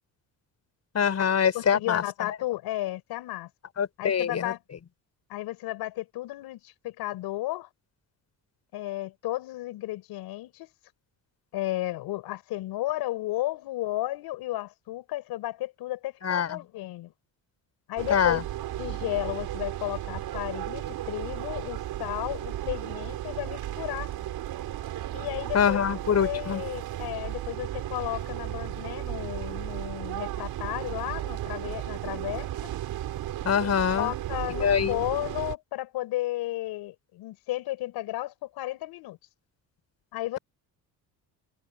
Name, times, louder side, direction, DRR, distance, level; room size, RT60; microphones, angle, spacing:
voice 1, 0.9-2.4 3.8-4.5 16.2-16.6 18.1-18.4 25.5-26.6 33.4-34.1 34.5-35.0, left 7 dB, 45° left, 5.9 m, -25 dB
voice 2, 1.5-3.5 4.0-4.6 5.3-7.7 8.7-10.7 11.5-17.1 17.9-18.4 18.8-24.1 25.1-32.7 33.6-39.2 40.1-40.4, left 16 dB, 85° left, 5.4 m, -33 dB
sound 1, 18.0-35.6, right 13 dB, 70° right, 4.6 m, -35 dB
cardioid pair, 115°, 37 cm